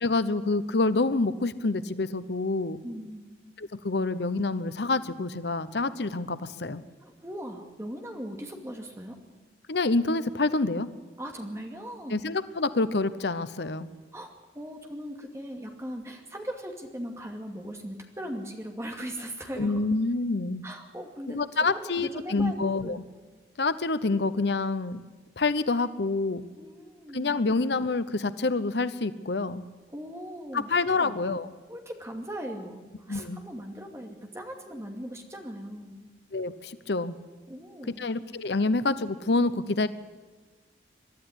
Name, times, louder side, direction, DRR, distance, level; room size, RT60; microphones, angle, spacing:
voice 1, 0.0-2.8 3.6-6.8 9.7-10.9 12.1-13.9 19.6-20.6 21.3-23.0 23.6-25.0 25.4-26.5 27.1-29.6 30.5-31.5 33.1-33.4 36.3-37.2 38.0-39.9, left 3 dB, 70° left, 14 dB, 0.9 m, -27 dB
voice 2, 2.8-3.4 7.0-9.2 11.2-12.3 14.1-19.9 20.6-21.4 21.7-23.0 26.6-27.5 29.9-31.2 31.7-36.1 37.5-38.0, equal, 15° right, 3 dB, 2.4 m, -39 dB
22.5 x 12.5 x 9.8 m, 1.3 s
head